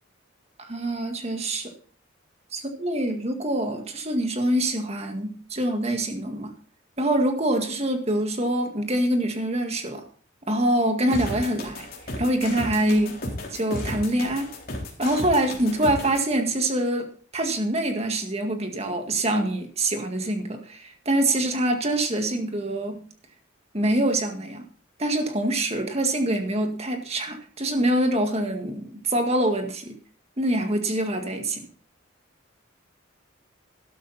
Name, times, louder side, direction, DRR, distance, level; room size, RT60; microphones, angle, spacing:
voice 1, 0.6-1.7 2.5-6.5 7.0-10.0 10.5-11.9 12.2-13.1 13.5-14.5 15.0-23.0 23.7-24.6 25.0-30.0 30.4-31.7, right 1 dB, 30° right, 5 dB, 1.9 m, -25 dB
sound 1, 11.1-16.2, left 1 dB, 50° left, 3.6 m, -33 dB
12.5 x 11.5 x 4.2 m, 0.43 s
head